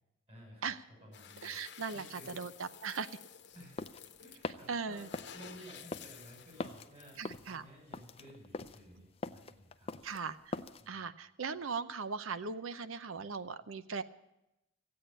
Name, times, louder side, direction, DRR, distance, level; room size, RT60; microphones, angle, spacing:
voice 1, 0.3-0.6 1.0-1.6 1.9-2.3 3.5-3.9 4.2-5.0 5.3-7.2 7.5-9.9 10.8-11.0, equal, 30° right, -2 dB, 6.1 m, -54 dB
sound 1, 1.1-7.5, left 8 dB, 60° left, 1.0 m, -53 dB
voice 2, 1.4-3.2 4.7-5.1 7.2-7.6 10.0-10.6 10.9-14.0, right 5 dB, 85° right, 13 dB, 0.7 m, -39 dB
sound 2, 3.5-10.9, left 3 dB, 30° left, 0.5 m, -43 dB
16.0 x 8.7 x 8.9 m, 0.89 s
head